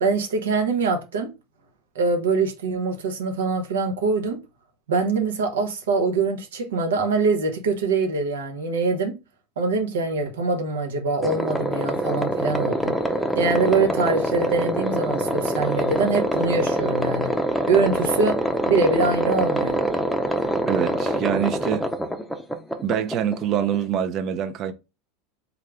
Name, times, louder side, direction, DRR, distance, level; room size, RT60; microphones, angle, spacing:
voice 1, 0.0-1.3 1.9-4.4 4.9-9.2 9.6-12.9 13.4-17.3 17.7-18.4 18.7-19.8, right 4 dB, 85° right, 0.8 m, -23 dB
sound 1, 11.2-23.8, equal, 5° left, 0.6 m, -25 dB
voice 2, 20.7-21.9 22.8-24.7, right 9 dB, 45° right, 0.5 m, -25 dB
3.5 x 2.4 x 3.3 m
hypercardioid pair, 100°, 0 cm